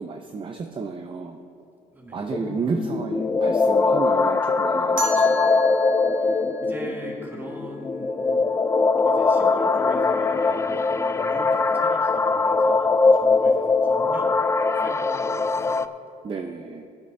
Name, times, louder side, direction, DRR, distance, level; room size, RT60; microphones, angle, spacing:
voice 1, 0.0-1.4 2.1-5.6 16.2-16.8, right 4 dB, 30° right, 5 dB, 0.7 m, -32 dB
voice 2, 1.9-2.4 5.0-5.1 6.2-8.7 9.0-14.3 14.7-15.8, right 1 dB, 10° right, -3 dB, 2.5 m, -41 dB
sound 1, 2.3-15.9, left 4 dB, 15° left, 0.3 m, -21 dB
sound 2, 5.0-7.8, right 1 dB, 55° right, 1.9 m, -35 dB
18.0 x 9.6 x 2.7 m, 2.3 s
cardioid pair, 110°, 17 cm